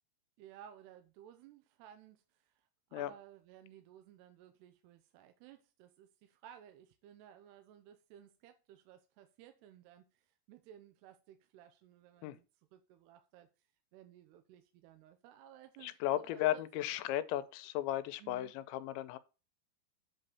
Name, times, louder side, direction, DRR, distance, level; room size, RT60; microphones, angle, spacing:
voice 1, 0.4-12.5 12.7-13.5 13.9-16.9 18.2-18.6, right 10 dB, 80° right, 2.6 m, -57 dB
voice 2, 15.8-19.2, left 13 dB, 85° left, 2.9 m, -35 dB
8.2 x 4.0 x 6.7 m
omnidirectional pair, 5.2 m